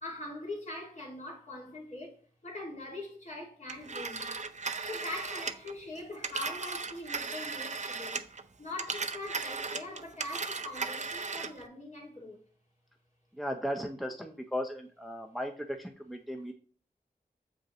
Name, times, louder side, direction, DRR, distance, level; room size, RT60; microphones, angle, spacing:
voice 1, 0.0-4.3 4.9-8.3 8.6-12.4, left 2 dB, 45° left, 2.4 m, -42 dB
Telephone, 3.7-8.4 8.7-11.6, right 4 dB, 45° right, 0.6 m, -37 dB
voice 2, 13.3-16.5, equal, ahead, 0.8 m, -36 dB
7.2 x 5.3 x 3.1 m
wide cardioid pair, 60°, 17 cm